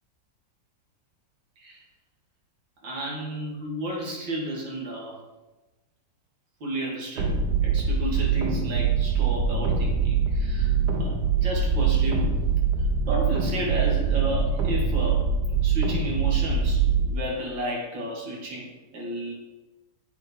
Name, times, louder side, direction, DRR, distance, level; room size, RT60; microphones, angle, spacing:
voice 1, 2.8-5.2 6.6-7.4 7.6-10.7 11.0-12.4 13.1-15.2 15.6-19.3, right 1 dB, 85° right, -3 dB, 3.1 m, -32 dB
sound 1, 7.2-17.1, right 6 dB, 65° right, 1.7 m, -23 dB
8.4 x 8.0 x 6.2 m, 1.1 s
omnidirectional pair, 2.0 m